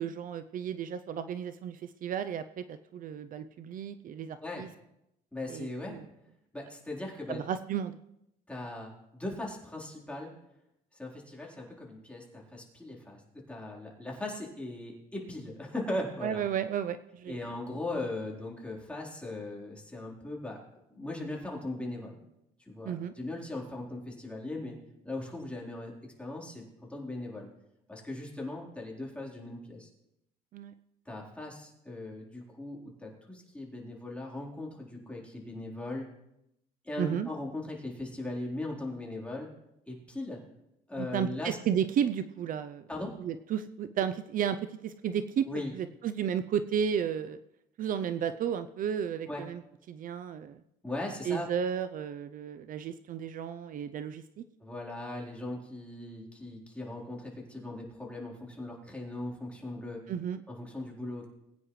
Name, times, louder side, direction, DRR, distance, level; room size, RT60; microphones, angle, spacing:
voice 1, 0.0-4.7 5.5-6.0 7.3-7.9 16.2-17.4 22.8-23.1 30.5-30.7 37.0-37.3 41.0-42.8 43.2-44.6 44.8-45.4 45.7-47.4 47.8-49.6 49.9-50.6 51.2-54.4 60.1-60.4, right 8 dB, 55° right, 12 dB, 0.6 m, -33 dB
voice 2, 5.3-6.0 6.5-7.4 8.5-10.3 10.9-13.2 13.5-16.4 17.3-20.6 20.9-22.2 22.7-24.7 25.0-25.9 26.2-27.5 27.9-29.9 31.1-36.1 36.8-39.5 39.9-40.4 40.9-41.6 42.9-43.1 45.5-45.7 49.3-49.4 50.8-51.5 54.6-60.0 60.5-61.3, left 2 dB, 5° left, -3 dB, 3.9 m, -39 dB
21.0 x 9.4 x 3.2 m, 0.83 s
cardioid pair, 110°, 17 cm